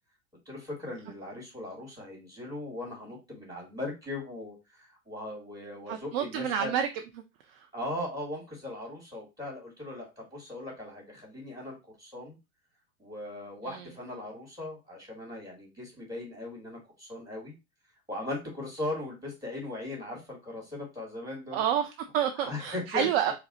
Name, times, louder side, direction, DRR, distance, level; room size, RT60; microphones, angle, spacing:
voice 1, 0.5-6.7 7.7-12.4 13.0-17.5 18.1-21.6 22.3-23.1, left 2 dB, 10° right, -1 dB, 2.5 m, -39 dB
voice 2, 5.9-6.9 7.5-7.7 13.7-13.9 21.5-23.3, right 9 dB, 45° right, 6 dB, 0.5 m, -29 dB
4.6 x 2.1 x 4.0 m, 0.26 s
figure-of-eight pair, 80°, 41 cm